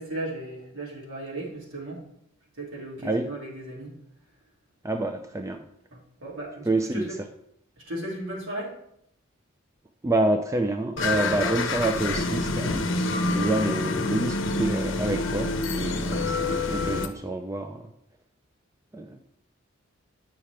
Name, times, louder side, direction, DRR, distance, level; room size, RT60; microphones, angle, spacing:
voice 1, 0.0-2.0 2.6-3.9 5.9-7.0 7.9-8.7, right 1 dB, 70° right, -4 dB, 2.5 m, -36 dB
voice 2, 4.8-5.6 6.7-7.1 10.0-12.9 13.3-17.9 18.9-19.2, right 2 dB, 15° right, 5 dB, 0.3 m, -27 dB
sound 1, 11.0-17.1, left 2 dB, 60° left, 0.7 m, -27 dB
8.7 x 5.7 x 3.3 m, 0.75 s
head